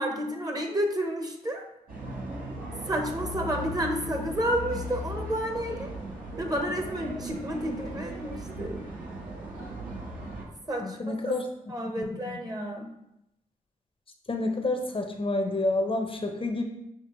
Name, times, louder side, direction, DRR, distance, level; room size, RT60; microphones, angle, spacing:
voice 1, 0.0-1.6 2.8-5.9 6.4-8.8 10.7-11.3 11.7-12.9, equal, 25° right, 3 dB, 0.9 m, -31 dB
sound 1, 1.9-10.4, equal, 70° right, 1.2 m, -37 dB
voice 2, 10.8-11.4 14.3-16.6, left 2 dB, 35° left, 4 dB, 0.7 m, -28 dB
6.0 x 2.8 x 3.0 m, 0.84 s
cardioid pair, 50°, 15 cm